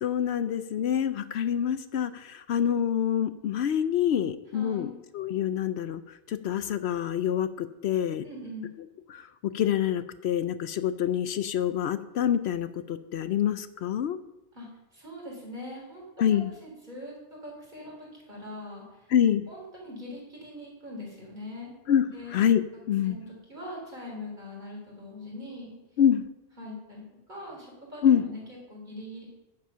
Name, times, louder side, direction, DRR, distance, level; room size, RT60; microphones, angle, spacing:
voice 1, 0.0-4.9 5.1-6.0 6.3-8.2 9.1-9.2 9.5-14.2 16.2-16.5 19.1-19.4 21.9-22.0 22.3-23.2 26.0-26.2 28.0-28.2, left 9 dB, 70° left, 12 dB, 0.8 m, -26 dB
voice 2, 4.5-5.0 8.2-8.8 14.5-19.1 19.5-21.7 22.0-22.4 22.7-25.7 26.6-29.3, left 1 dB, 45° right, -3 dB, 3.9 m, -42 dB
10.5 x 7.7 x 5.7 m, 1.0 s
omnidirectional pair, 1.2 m